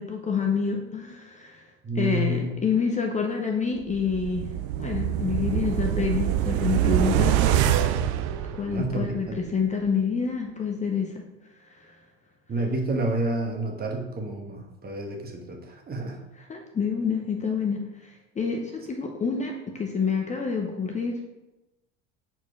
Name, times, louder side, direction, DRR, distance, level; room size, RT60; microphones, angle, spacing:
voice 1, 0.0-1.7 1.9-4.5 4.8-7.4 8.6-11.2 11.9-12.0 16.4-18.1 18.4-21.2, left 5 dB, 20° left, 2 dB, 0.7 m, -27 dB
voice 2, 1.8-2.5 8.7-9.4 12.5-16.2, right 2 dB, 25° right, 1 dB, 1.2 m, -29 dB
sound 1, 3.9-9.1 9.5-9.6, right 11 dB, 70° right, 0.5 m, -25 dB
4.9 x 4.5 x 4.6 m, 0.99 s
supercardioid pair, 95°, 34 cm